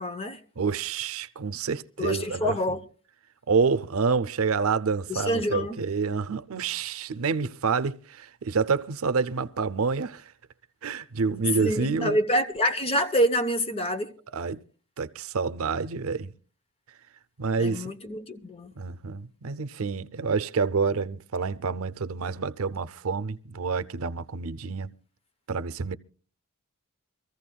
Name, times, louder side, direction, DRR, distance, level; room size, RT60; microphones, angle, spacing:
voice 1, 0.0-0.4 2.0-2.8 5.1-5.8 11.5-14.1 17.6-18.7, equal, 25° left, 0.8 m, -27 dB
voice 2, 0.6-2.5 3.5-10.3 10.8-12.2 14.3-14.6 15.0-16.3 17.4-17.9 18.8-25.0 25.5-26.0, right 5 dB, 75° right, 0.6 m, -28 dB
25.0 x 14.5 x 2.3 m
head